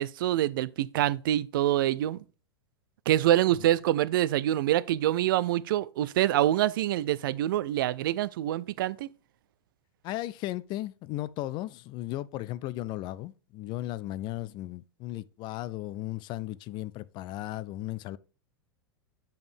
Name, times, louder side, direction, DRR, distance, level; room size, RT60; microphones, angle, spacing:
voice 1, 0.0-2.2 3.1-9.1, right 13 dB, 60° right, 0.4 m, -26 dB
voice 2, 10.0-18.2, left 16 dB, 35° left, 0.4 m, -36 dB
7.7 x 5.2 x 3.4 m
figure-of-eight pair, 95°, 13 cm